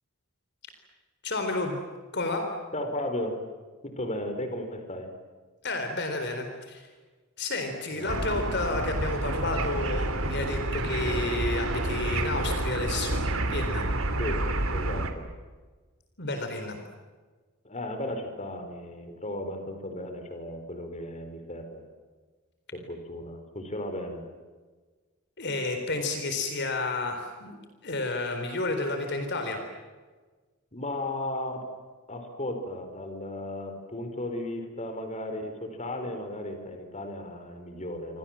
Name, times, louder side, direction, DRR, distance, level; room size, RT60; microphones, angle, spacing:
voice 1, 1.2-1.8 2.1-2.4 5.6-6.9 7.4-13.9 16.2-16.8 25.4-27.6 27.8-29.6, left 2 dB, 55° left, 6 dB, 4.1 m, -31 dB
voice 2, 2.7-3.4 3.8-5.1 7.9-8.2 14.2-14.4 14.7-15.3 17.6-21.9 22.7-24.2 30.7-31.6 32.1-38.2, left 1 dB, 35° left, 6 dB, 4.8 m, -35 dB
sound 1, 8.1-15.1, right 2 dB, 75° right, 3.0 m, -29 dB
29.0 x 25.5 x 7.6 m, 1.4 s
head